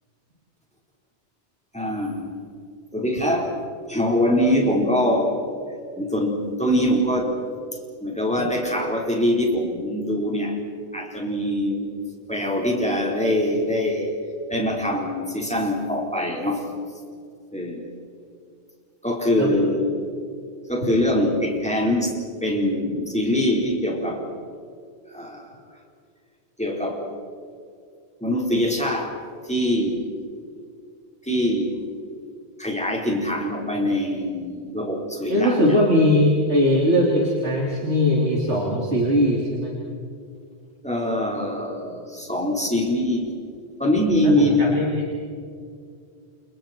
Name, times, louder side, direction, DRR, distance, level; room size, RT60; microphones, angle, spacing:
voice 1, 1.7-2.3 2.9-3.5 3.9-5.4 6.0-7.4 8.0-10.6 10.9-11.9 12.3-14.1 14.5-16.7 17.5-17.8 19.0-20.0 20.7-24.2 25.1-25.5 26.6-27.0 28.2-29.2 29.4-30.1 31.2-31.8 32.6-35.8 40.8-43.3 43.8-44.6, left 1 dB, 5° left, -1 dB, 4.7 m, -23 dB
voice 2, 35.3-39.7 44.2-45.0, left 1 dB, 75° right, -3 dB, 3.7 m, -20 dB
29.5 x 29.5 x 4.6 m, 2.3 s
omnidirectional pair, 1.2 m